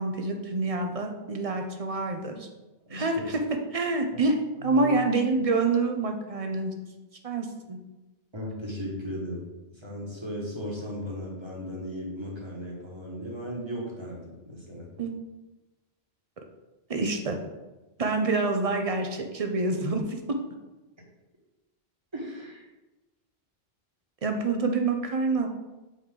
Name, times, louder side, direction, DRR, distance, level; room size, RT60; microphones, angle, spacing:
voice 1, 0.0-2.5 2.9-3.4 3.7-6.7 7.2-7.8 15.0-15.1 16.9-17.4 18.0-20.2 24.2-25.5, right 3 dB, 40° right, 4 dB, 0.6 m, -27 dB
voice 2, 4.5-4.9 8.3-9.4 9.8-14.2 14.5-14.9 22.1-22.6, equal, 25° right, -4 dB, 1.5 m, -36 dB
5.6 x 4.8 x 3.7 m, 1.1 s
omnidirectional pair, 1.1 m